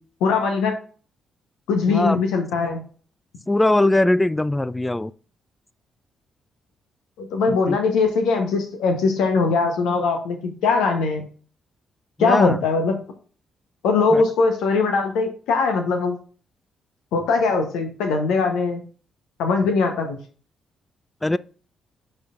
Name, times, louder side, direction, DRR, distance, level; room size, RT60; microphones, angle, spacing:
voice 1, 0.2-0.7 1.7-2.8 7.2-11.2 12.2-12.9 13.8-16.2 17.1-18.8 19.4-20.2, left 4 dB, 70° left, 0.9 m, -21 dB
voice 2, 1.9-2.2 3.5-5.1 7.7-7.8 12.2-12.6 14.1-14.2 21.2-21.4, left 1 dB, 15° left, 0.3 m, -20 dB
9.7 x 4.4 x 2.4 m
hypercardioid pair, 40°, 0 cm